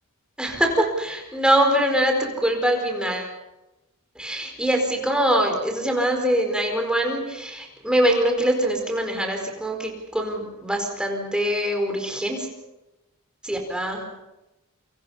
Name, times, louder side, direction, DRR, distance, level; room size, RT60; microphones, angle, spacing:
voice 1, 0.4-3.3 4.1-12.5 13.4-14.1, right 1 dB, 5° right, 2 dB, 4.6 m, -23 dB
29.0 x 25.0 x 5.7 m, 1.0 s
head